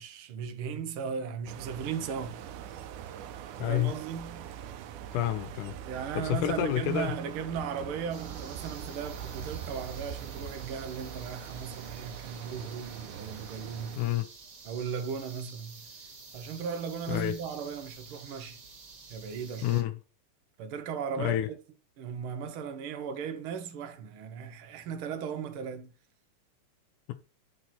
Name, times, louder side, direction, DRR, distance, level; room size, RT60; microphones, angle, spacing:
voice 1, 0.0-2.4 3.6-4.5 5.8-14.0 14.6-15.9 16.3-18.6 19.1-19.8 20.6-21.6 22.0-25.9, right 6 dB, 70° right, 1.3 m, -37 dB
sound 1, 1.5-14.0, right 9 dB, 90° right, 2.2 m, -42 dB
voice 2, 3.6-3.9 5.1-5.8 6.2-7.1 14.0-14.3 17.1-17.4 19.6-20.0 21.2-21.5, left 12 dB, 90° left, 2.3 m, -28 dB
sound 2, 8.1-19.8, right 4 dB, 40° right, 2.1 m, -50 dB
9.1 x 4.3 x 4.2 m
omnidirectional pair, 3.5 m